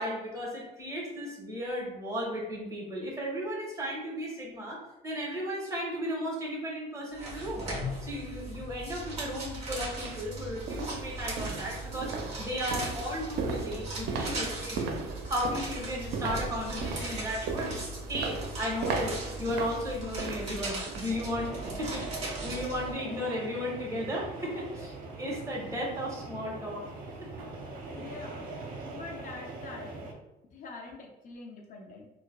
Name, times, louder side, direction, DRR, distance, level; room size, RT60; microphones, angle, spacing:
voice 1, 0.0-7.7 8.0-12.1 12.4-14.9 15.3-17.8 18.1-21.5 21.8-26.8 27.2-27.3, equal, 20° right, -4 dB, 1.4 m, -35 dB
sound 1, 7.2-22.9, right 2 dB, 40° right, 1.5 m, -39 dB
sound 2, 9.2-9.3 9.9-21.2 21.5-21.8 22.2-22.3, right 4 dB, 80° right, 0.5 m, -37 dB
sound 3, 21.1-30.1, right 3 dB, 60° right, 0.8 m, -41 dB
voice 2, 27.9-28.5 28.9-30.2 30.5-32.1, left 4 dB, 50° left, 1 dB, 0.6 m, -44 dB
4.4 x 2.3 x 2.3 m, 0.96 s
cardioid pair, 110°, 17 cm